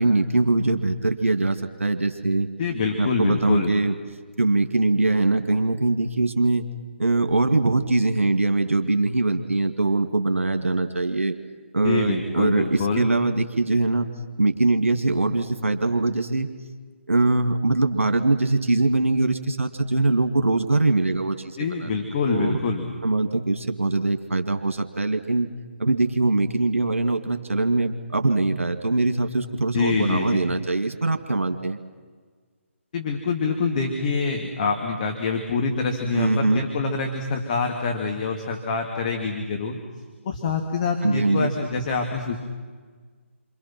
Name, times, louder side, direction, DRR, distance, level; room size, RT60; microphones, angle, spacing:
voice 1, 0.0-2.5 3.0-3.9 4.4-6.7 7.0-11.3 11.7-14.1 14.4-16.5 17.1-21.9 22.3-22.6 23.0-25.5 25.8-31.8 36.1-36.7 41.0-41.5, right 2 dB, 75° right, 6 dB, 2.4 m, -22 dB
voice 2, 2.6-3.7 11.8-13.1 21.6-22.9 29.7-30.5 32.9-39.8 40.2-42.4, left 4 dB, 35° left, 2 dB, 2.7 m, -26 dB
29.0 x 26.5 x 6.2 m, 1.5 s
figure-of-eight pair, 145°, 7 cm